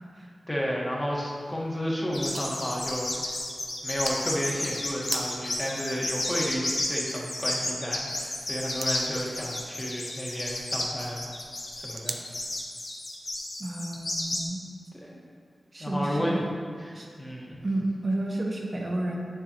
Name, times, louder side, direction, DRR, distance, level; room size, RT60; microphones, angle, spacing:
voice 1, 0.5-3.4 3.8-11.2 11.8-12.2 15.0-15.2 15.8-16.4 16.8-17.5, equal, 10° left, -4 dB, 1.3 m, -32 dB
sound 1, 1.3-12.3, right 4 dB, 75° right, 0.5 m, -45 dB
sound 2, 2.1-14.4, left 1 dB, 50° left, 1.1 m, -32 dB
voice 2, 13.6-14.6 15.7-16.5 16.9-17.1 17.6-19.2, right 1 dB, 40° right, 0 dB, 1.0 m, -31 dB
8.2 x 6.9 x 2.9 m, 2.1 s
wide cardioid pair, 110°, 0 cm